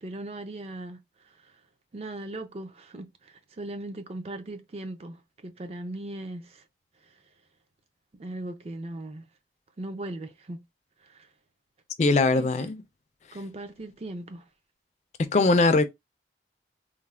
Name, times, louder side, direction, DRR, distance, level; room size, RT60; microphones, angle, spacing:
voice 1, 0.0-1.6 1.9-6.6 7.0-7.2 8.1-9.3 9.8-10.6 11.0-11.3 12.3-12.5 13.3-14.5, right 1 dB, 35° right, 0.4 m, -39 dB
voice 2, 12.0-12.8 15.2-15.8, left 3 dB, 40° left, 0.3 m, -21 dB
3.2 x 2.1 x 2.3 m
head